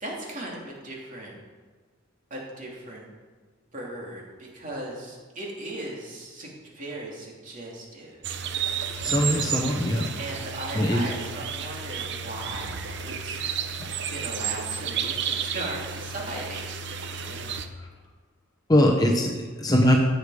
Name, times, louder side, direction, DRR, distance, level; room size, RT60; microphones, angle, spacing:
voice 1, 0.0-1.4 2.3-3.1 3.7-8.2 8.8-9.6 10.2-13.4 14.0-17.6 17.9-18.0, right 1 dB, 40° right, -3 dB, 2.8 m, -38 dB
sound 1, 8.2-17.7, right 7 dB, 55° right, 0.7 m, -32 dB
voice 2, 9.0-10.1 10.8-11.0 18.7-20.0, left 1 dB, 20° left, 1 dB, 0.9 m, -21 dB
16.5 x 6.8 x 4.9 m, 1.5 s
head